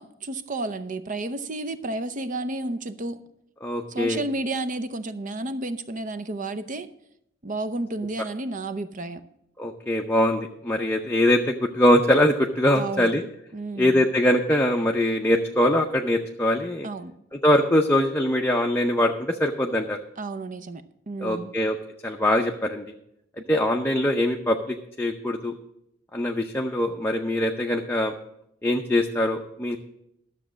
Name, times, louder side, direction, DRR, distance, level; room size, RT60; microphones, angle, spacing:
voice 1, 0.0-3.2 3.9-6.9 7.4-9.2 12.7-13.1 13.5-14.0 16.8-17.1 20.2-21.5, right 2 dB, 40° right, 12 dB, 0.7 m, -31 dB
voice 2, 3.6-4.2 9.6-13.2 13.8-16.9 17.4-20.0 21.2-21.8 22.0-22.8 23.5-25.5 26.1-28.1 28.6-29.8, left 1 dB, 10° left, 2 dB, 0.6 m, -22 dB
12.0 x 6.9 x 6.2 m, 0.78 s
head